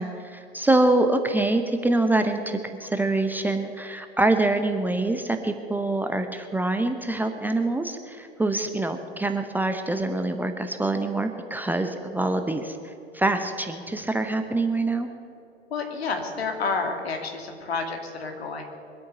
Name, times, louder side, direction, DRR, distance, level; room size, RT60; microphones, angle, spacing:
voice 1, 0.0-15.1, right 2 dB, 5° right, 6 dB, 0.8 m, -25 dB
voice 2, 15.7-18.7, left 4 dB, 70° left, 4 dB, 2.6 m, -30 dB
23.5 x 8.5 x 6.7 m, 2.8 s
figure-of-eight pair, 90°, 32 cm